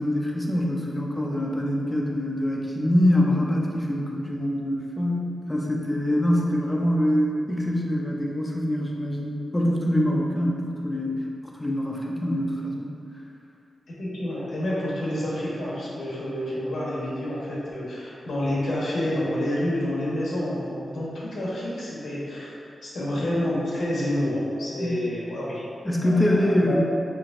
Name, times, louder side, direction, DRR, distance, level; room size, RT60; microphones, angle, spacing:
voice 1, 0.0-11.2 11.6-12.9 24.8-24.9 25.8-26.8, left 1 dB, 10° left, -2 dB, 0.5 m, -24 dB
voice 2, 13.9-22.5 22.8-25.6 26.0-26.8, left 1 dB, 80° left, -7 dB, 1.2 m, -28 dB
5.8 x 3.3 x 2.5 m, 2.5 s
wide cardioid pair, 165°, 0 cm